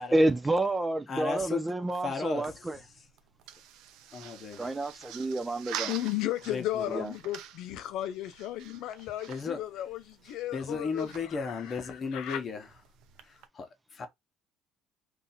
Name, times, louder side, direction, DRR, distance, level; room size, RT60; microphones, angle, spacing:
voice 1, 0.1-2.8 4.6-5.9 6.9-7.1, right 1 dB, 15° right, 0.3 m, -29 dB
voice 2, 1.1-1.7 2.0-2.7 4.1-4.6 6.5-7.0 9.3-9.6 10.5-12.6 13.2-14.1, left 4 dB, 35° left, 0.9 m, -35 dB
sound 1, 2.5-13.5, right 10 dB, 75° right, 0.5 m, -46 dB
voice 3, 5.9-12.4, left 13 dB, 70° left, 0.4 m, -35 dB
2.7 x 2.5 x 4.1 m
cardioid pair, 115°, 0 cm